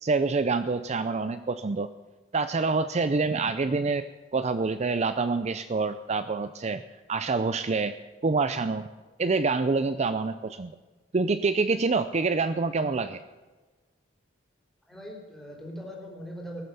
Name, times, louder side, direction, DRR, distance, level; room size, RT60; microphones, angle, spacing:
voice 1, 0.0-1.9 2.3-4.1 4.3-6.8 7.1-8.0 8.2-8.9 9.2-10.8 11.1-13.2, right 4 dB, 35° right, 11 dB, 0.5 m, -26 dB
voice 2, 14.9-16.6, equal, ahead, -2 dB, 3.9 m, -40 dB
19.5 x 7.6 x 7.1 m, 1.3 s
head